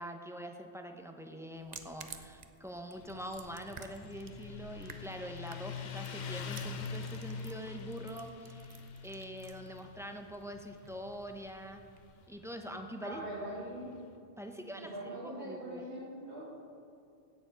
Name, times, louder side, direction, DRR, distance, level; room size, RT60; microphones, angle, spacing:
voice 1, 0.0-8.7 9.0-11.8 12.3-13.2 14.4-15.9, equal, 5° right, 4 dB, 0.6 m, -44 dB
sound 1, 1.5-12.3, right 5 dB, 45° right, 0.7 m, -55 dB
Motorcycle, 3.0-14.1, left 5 dB, 45° left, 0.7 m, -45 dB
voice 2, 13.0-13.9 14.8-16.5, right 1 dB, 75° right, -10 dB, 3.2 m, -42 dB
16.5 x 6.9 x 5.1 m, 2.4 s
omnidirectional pair, 1.1 m